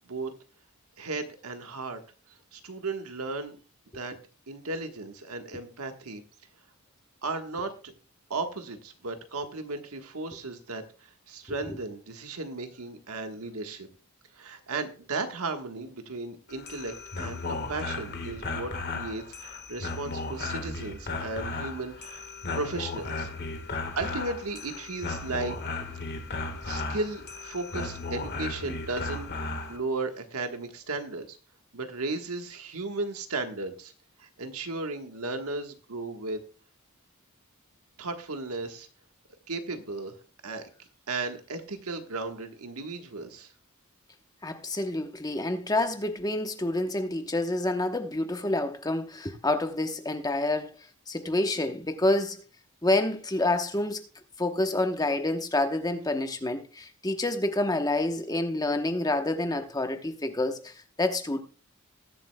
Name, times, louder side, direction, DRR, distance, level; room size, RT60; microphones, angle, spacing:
voice 1, 1.0-2.0 2.5-3.6 3.9-4.2 4.5-6.2 7.2-7.9 8.3-13.9 14.4-23.3 23.7-25.6 26.6-31.4 31.7-33.9 34.2-36.4 38.0-38.9 39.5-40.2 40.4-40.6 41.1-43.5, right 3 dB, 85° right, 1.3 m, -35 dB
sound 1, 16.5-29.8, left 3 dB, 50° left, 1.5 m, -35 dB
voice 2, 44.4-50.7 51.1-52.4 52.8-54.0 54.4-60.7 61.0-61.4, left 2 dB, 15° left, 0.9 m, -28 dB
20.5 x 7.7 x 2.2 m
head